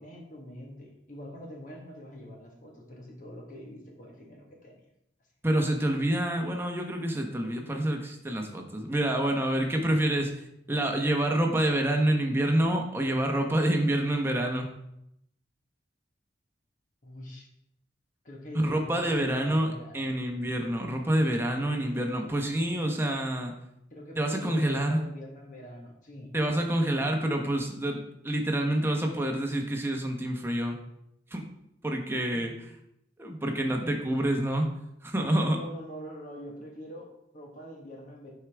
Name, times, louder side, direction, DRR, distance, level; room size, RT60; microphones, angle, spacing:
voice 1, 0.0-4.8 9.7-10.0 17.0-17.5 18.2-20.1 23.9-26.3 32.3-32.4 35.5-38.3, equal, 45° left, -1 dB, 1.4 m, -44 dB
voice 2, 5.4-10.3 10.7-14.7 18.5-23.5 24.2-25.0 26.3-30.8 31.3-31.5 31.8-32.5 33.2-34.7 35.0-35.6, right 1 dB, 15° right, 2 dB, 0.9 m, -27 dB
9.4 x 4.7 x 3.4 m, 0.80 s
head